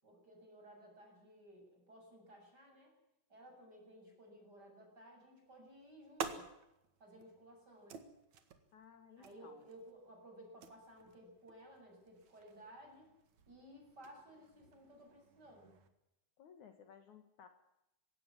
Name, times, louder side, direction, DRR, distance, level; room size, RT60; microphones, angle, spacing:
voice 1, 0.0-2.9 3.3-6.5 7.0-8.0 9.2-13.1 13.5-15.8, right 1 dB, 25° right, 1 dB, 8.1 m, -57 dB
sound 1, 5.5-15.9, right 6 dB, 60° right, 3.0 m, -52 dB
voice 2, 8.7-9.6 16.4-17.5, left 7 dB, 60° left, 8 dB, 2.8 m, -58 dB
19.5 x 17.0 x 9.8 m, 0.87 s
omnidirectional pair, 4.1 m